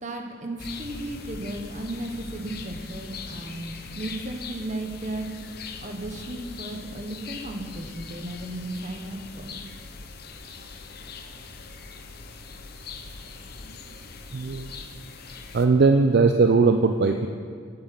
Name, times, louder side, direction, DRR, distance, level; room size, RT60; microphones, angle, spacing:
voice 1, 0.0-5.3 5.8-9.5, right 1 dB, 40° right, 4 dB, 1.0 m, -35 dB
sound 1, 0.6-15.7, left 4 dB, 50° left, 0.7 m, -41 dB
voice 2, 14.3-14.7 15.5-17.3, right 4 dB, 55° right, 6 dB, 0.4 m, -19 dB
8.7 x 7.7 x 5.9 m, 2.3 s
head